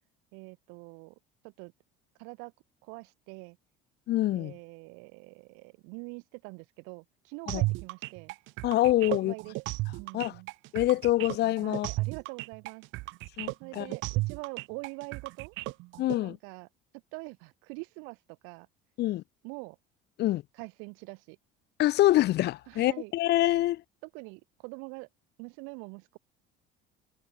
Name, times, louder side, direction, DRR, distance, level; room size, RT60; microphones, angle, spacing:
voice 1, 0.3-1.2 1.4-1.7 2.2-2.5 2.8-3.6 4.3-8.3 9.1-9.6 10.0-10.5 11.6-12.8 13.6-15.6 16.2-16.7 17.1-18.7 19.4-19.8 20.5-21.4 22.7-23.4 24.0-25.1 25.4-26.2, right 34 dB, 90° right, 6.9 m, -44 dB
voice 2, 4.1-4.5 7.5-7.6 8.6-9.3 10.1-10.3 10.7-11.9 13.4-13.9 16.0-16.4 19.0-19.2 20.2-20.4 21.8-23.8, left 15 dB, 55° left, 1.5 m, -25 dB
sound 1, 7.5-16.2, right 22 dB, 70° right, 1.7 m, -34 dB
cardioid pair, 140°, 20 cm